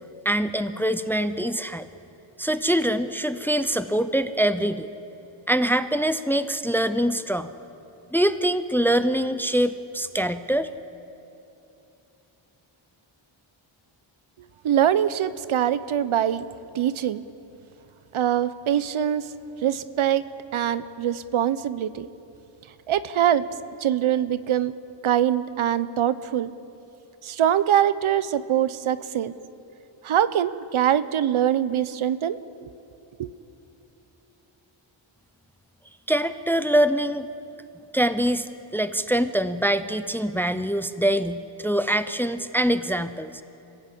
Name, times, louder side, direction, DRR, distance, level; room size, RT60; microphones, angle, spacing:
voice 1, 0.2-1.9 2.4-4.9 5.5-7.5 8.1-10.7 36.1-37.3 37.9-38.5 38.7-43.4, right 1 dB, 5° left, 12 dB, 0.6 m, -24 dB
voice 2, 14.6-16.5 16.7-17.2 18.1-19.3 19.6-20.2 20.5-22.1 22.9-23.5 23.8-24.7 25.0-26.5 27.2-29.3 30.0-32.7 33.2-33.3, right 10 dB, 75° right, 15 dB, 0.9 m, -23 dB
29.5 x 16.0 x 8.5 m, 2.9 s
wide cardioid pair, 120°, 50 cm